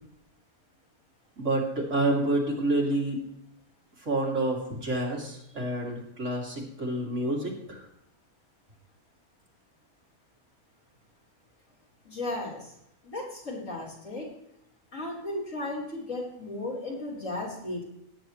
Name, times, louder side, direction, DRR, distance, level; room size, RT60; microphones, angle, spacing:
voice 1, 1.4-3.2 4.1-7.8, right 1 dB, 50° right, -3 dB, 3.0 m, -28 dB
voice 2, 12.0-12.7 13.0-14.2 14.9-17.8, left 2 dB, 60° left, -5 dB, 4.2 m, -35 dB
18.0 x 9.2 x 3.1 m, 0.78 s
omnidirectional pair, 1.6 m